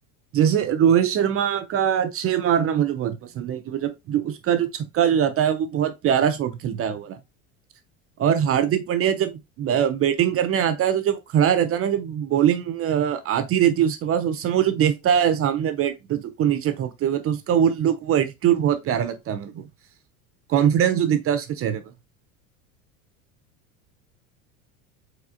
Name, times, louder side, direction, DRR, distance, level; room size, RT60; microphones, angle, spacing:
voice 1, 0.3-7.2 8.2-19.6 20.5-21.8, right 9 dB, 30° right, 0.5 m, -22 dB
4.8 x 4.1 x 2.5 m
hypercardioid pair, 85°, 43 cm